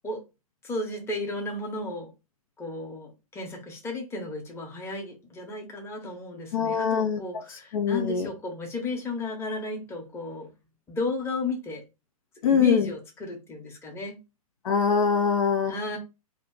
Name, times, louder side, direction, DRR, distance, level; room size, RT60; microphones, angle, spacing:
voice 1, 0.6-2.1 2.6-10.5 10.9-11.8 12.5-14.2 15.7-16.0, left 2 dB, 15° left, 0.9 m, -34 dB
voice 2, 6.5-7.2 7.7-8.3 12.4-12.9 14.6-15.7, left 6 dB, 65° left, 0.6 m, -23 dB
2.5 x 2.2 x 3.7 m
hypercardioid pair, 115°, 19 cm